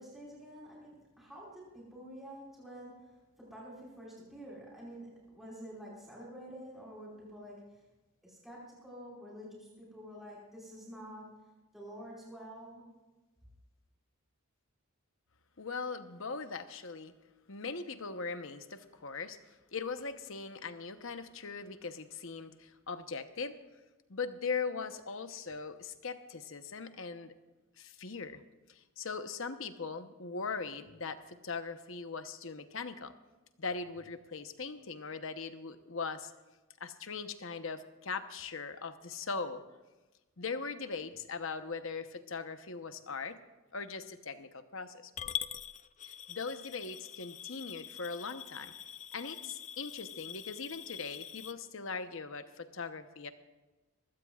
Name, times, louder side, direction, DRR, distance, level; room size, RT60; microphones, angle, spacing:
voice 1, 0.0-7.9 8.2-12.9, equal, ahead, -6 dB, 5.0 m, -49 dB
voice 2, 15.6-17.1 17.5-23.6 24.1-27.3 27.8-28.4 28.7-33.1 33.6-36.3 36.8-39.6 40.4-43.4 43.7-45.1 46.0-48.7 49.1-53.3, left 4 dB, 60° left, 9 dB, 1.0 m, -40 dB
Coin (dropping) / Glass, 45.2-51.5, left 9 dB, 30° left, 0.4 m, -44 dB
23.0 x 16.5 x 2.4 m, 1.2 s
head